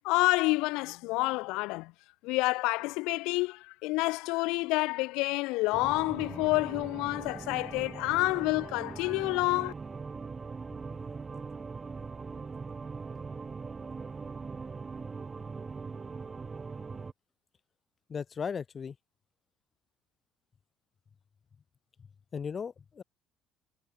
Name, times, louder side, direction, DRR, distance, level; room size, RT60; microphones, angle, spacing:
voice 1, 0.0-1.9 2.2-9.7, left 23 dB, 80° left, 0.3 m, -28 dB
sound 1, 5.7-17.1, right 4 dB, 25° right, 1.8 m, -41 dB
voice 2, 18.1-18.9 22.3-23.0, left 6 dB, 35° left, 0.7 m, -36 dB
supercardioid pair, 95°, 0 cm